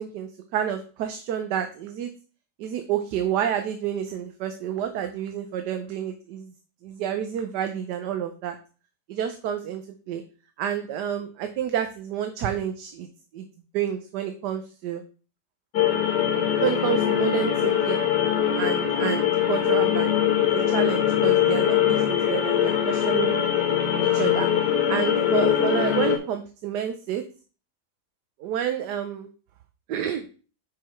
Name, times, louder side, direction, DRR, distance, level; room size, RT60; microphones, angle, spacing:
voice 1, 0.0-2.1 2.6-6.5 6.8-8.6 9.1-9.8 10.1-10.2 10.6-13.1 13.3-13.5 13.7-15.0 16.6-18.0 18.5-20.2 20.5-23.4 24.1-24.5 24.9-27.2 28.4-29.3 29.9-30.3, right 9 dB, 80° right, 7 dB, 1.3 m, -29 dB
sound 1, 15.7-26.2, left 10 dB, 85° left, 1.7 m, -22 dB
5.5 x 5.4 x 4.4 m, 0.38 s
omnidirectional pair, 1.8 m